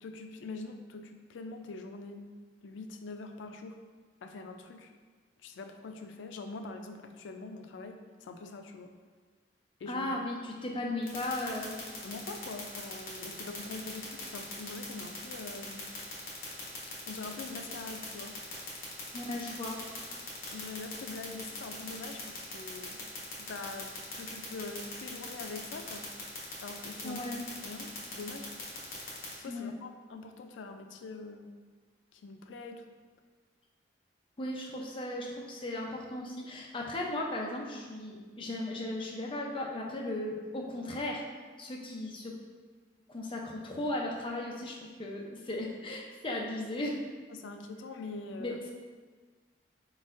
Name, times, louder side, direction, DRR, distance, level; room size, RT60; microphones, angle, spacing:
voice 1, 0.0-2.3 2.6-3.8 4.2-4.9 5.4-8.9 9.8-10.1 12.0-15.9 17.1-18.4 20.5-23.1 23.4-26.1 26.6-27.3 27.6-28.5 29.4-31.5 32.1-32.8 47.3-48.6, left 3 dB, 85° left, 6 dB, 0.4 m, -43 dB
voice 2, 9.9-11.8 19.1-19.8 27.0-27.4 29.4-29.8 34.4-41.2 41.6-42.3 43.1-47.0 48.4-48.7, left 1 dB, 30° left, -1 dB, 0.5 m, -36 dB
sound 1, 11.1-29.3, left 4 dB, 50° left, 1.1 m, -41 dB
4.2 x 3.9 x 2.4 m, 1.4 s
head